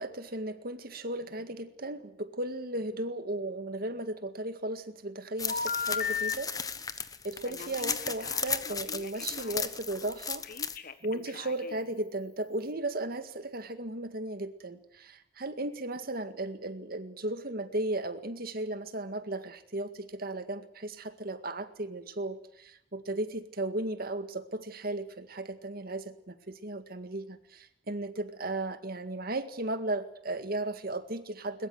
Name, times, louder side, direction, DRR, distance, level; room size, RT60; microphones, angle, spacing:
voice 1, 0.0-6.5 7.0-10.5 11.0-31.7, right 2 dB, 55° right, 10 dB, 1.9 m, -35 dB
sound 1, 5.4-10.8, left 6 dB, 20° left, 1.1 m, -35 dB
Telephone, 5.5-6.3 7.4-9.6 10.4-11.9, left 6 dB, 50° left, 1.6 m, -36 dB
21.5 x 21.0 x 8.1 m, 0.76 s
head